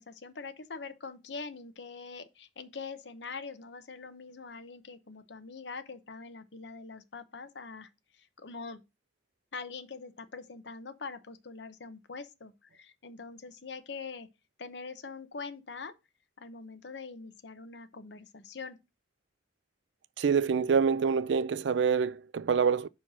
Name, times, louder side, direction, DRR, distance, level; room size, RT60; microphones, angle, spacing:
voice 1, 0.0-7.9 8.2-8.8 9.5-14.3 14.6-15.9 16.4-18.8, left 4 dB, 80° left, 0.9 m, -43 dB
voice 2, 20.2-22.9, right 6 dB, 85° right, 0.4 m, -26 dB
5.6 x 4.4 x 5.9 m
head